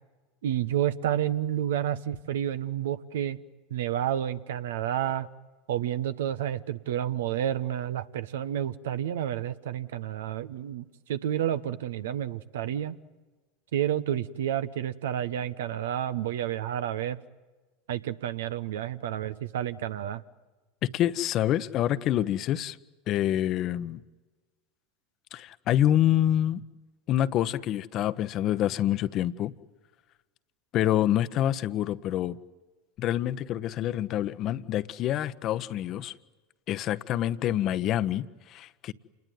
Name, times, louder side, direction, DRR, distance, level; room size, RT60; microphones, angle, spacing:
voice 1, 0.4-3.4 3.7-5.3 5.7-12.9 13.7-17.2 17.9-20.2, right 11 dB, 75° right, 12 dB, 1.0 m, -30 dB
voice 2, 20.8-22.8 23.1-24.0 25.3-26.6 27.1-29.5 30.7-32.4 33.0-36.1 36.7-38.9, left 12 dB, 45° left, 14 dB, 1.0 m, -27 dB
28.5 x 20.5 x 9.4 m, 1.3 s
hypercardioid pair, 85°, 0 cm